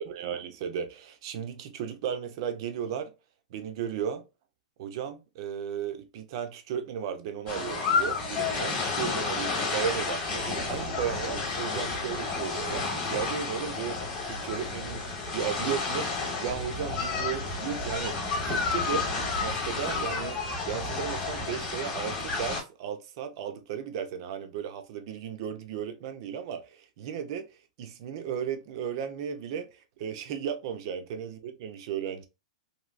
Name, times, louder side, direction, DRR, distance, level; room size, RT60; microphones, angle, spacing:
voice 1, 0.0-3.1 3.5-4.2 4.8-19.1 19.3-20.4 20.7-27.5 27.8-32.3, right 8 dB, 40° right, 0.5 m, -35 dB
sound 1, 7.5-22.6, left 4 dB, 20° left, 1.1 m, -31 dB
3.2 x 2.7 x 2.5 m
supercardioid pair, 170°, 4 cm